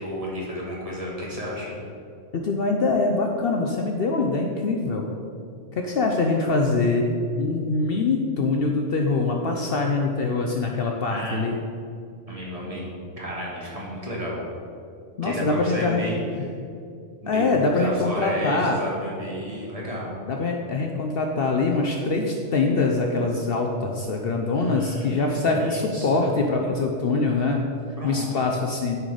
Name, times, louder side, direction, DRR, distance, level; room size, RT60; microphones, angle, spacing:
voice 1, 0.0-1.7 11.1-11.4 12.3-12.8 13.2-14.4 15.2-16.2 17.2-20.1 24.5-26.3 28.0-28.2, equal, 30° right, -5 dB, 1.6 m, -32 dB
voice 2, 2.3-5.1 5.7-7.1 7.4-11.6 15.2-16.0 17.3-18.8 20.3-27.6 28.0-29.0, left 3 dB, 60° left, 2 dB, 0.8 m, -23 dB
9.6 x 4.0 x 4.9 m, 2.4 s
omnidirectional pair, 1.3 m